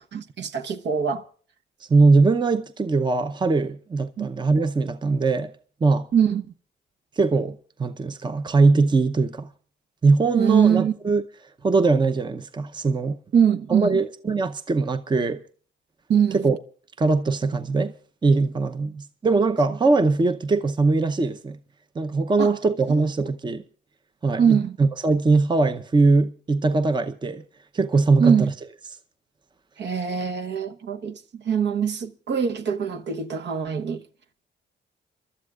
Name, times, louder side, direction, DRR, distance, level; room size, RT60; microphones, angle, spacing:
voice 1, 0.1-1.2 4.2-4.3 6.1-6.4 10.3-10.9 13.3-14.0 16.1-16.4 22.4-22.6 24.4-24.8 28.2-28.5 29.8-34.0, right 7 dB, 60° right, 1.1 m, -22 dB
voice 2, 1.9-5.5 5.8-6.1 7.2-9.5 10.0-11.2 11.6-13.2 13.7-15.4 16.3-16.6 17.0-17.9 18.2-21.6 22.0-23.6 24.2-27.4 27.7-28.5, right 3 dB, 25° right, 0.8 m, -21 dB
29.5 x 12.5 x 2.4 m
cardioid pair, 90°, 20 cm